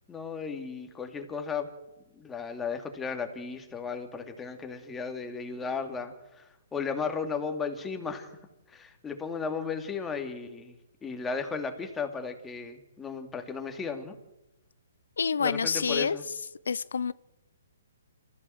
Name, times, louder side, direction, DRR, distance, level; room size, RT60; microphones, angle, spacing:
voice 1, 0.1-1.7 2.2-8.4 8.7-10.7 11.0-14.1 15.4-16.2, left 5 dB, 10° left, 5 dB, 2.7 m, -35 dB
voice 2, 15.2-16.2 16.7-17.1, left 6 dB, 75° left, 18 dB, 0.7 m, -27 dB
28.0 x 15.0 x 7.9 m, 0.98 s
hypercardioid pair, 145°, 0 cm